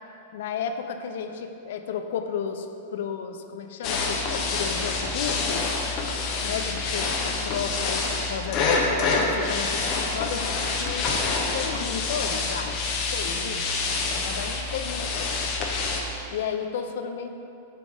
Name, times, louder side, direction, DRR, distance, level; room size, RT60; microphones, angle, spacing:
voice 1, 0.3-5.7 6.4-11.2 11.5-15.4 16.3-17.3, left 7 dB, 60° left, 7 dB, 0.4 m, -33 dB
sound 1, 3.8-16.0, left 3 dB, 40° left, 0.8 m, -27 dB
6.8 x 3.5 x 4.8 m, 2.8 s
figure-of-eight pair, 95°, 0 cm